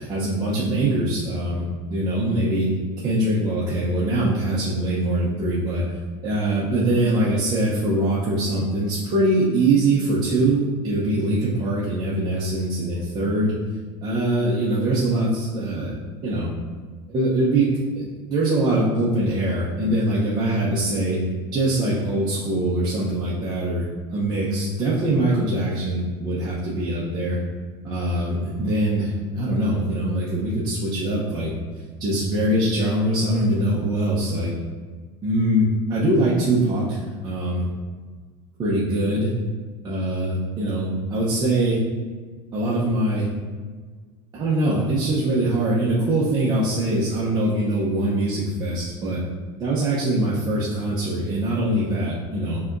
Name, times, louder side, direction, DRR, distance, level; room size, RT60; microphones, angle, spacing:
voice 1, 0.0-2.7 3.0-5.8 6.2-13.5 14.0-15.9 16.2-16.5 17.1-17.7 17.9-21.2 21.5-27.4 27.8-31.5 32.0-34.5 35.2-37.6 38.6-39.3 39.8-41.8 42.5-43.3 44.3-49.2 49.6-52.6, right 1 dB, 30° right, -7 dB, 0.8 m, -23 dB
5.5 x 2.9 x 2.6 m, 1.5 s
supercardioid pair, 130°, 13 cm